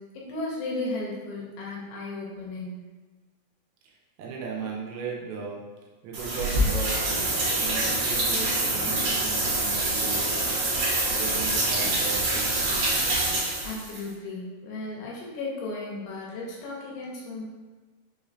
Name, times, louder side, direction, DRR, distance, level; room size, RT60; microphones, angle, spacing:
voice 1, 0.0-2.8 13.6-17.5, left 2 dB, 75° left, -3 dB, 2.3 m, -35 dB
voice 2, 4.2-12.7, right 4 dB, 90° right, -2 dB, 2.6 m, -37 dB
sound 1, 6.1-14.0, right 2 dB, 70° right, 1.7 m, -26 dB
5.9 x 3.0 x 2.6 m, 1.3 s
omnidirectional pair, 4.6 m